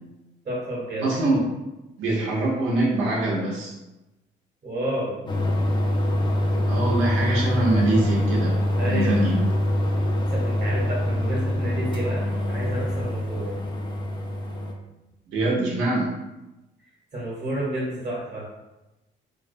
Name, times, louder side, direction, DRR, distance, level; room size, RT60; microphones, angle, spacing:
voice 1, 0.4-1.1 4.6-5.1 8.8-9.2 10.3-13.6 17.1-18.5, right 1 dB, 35° right, -6 dB, 0.8 m, -30 dB
voice 2, 1.0-1.5 2.0-3.7 6.7-8.5 8.8-9.4 15.3-16.1, right 2 dB, 90° right, -4 dB, 0.6 m, -23 dB
sound 1, 5.3-14.7, left 1 dB, 25° left, 0.4 m, -24 dB
2.3 x 2.1 x 2.5 m, 1.0 s
cardioid pair, 90°, 20 cm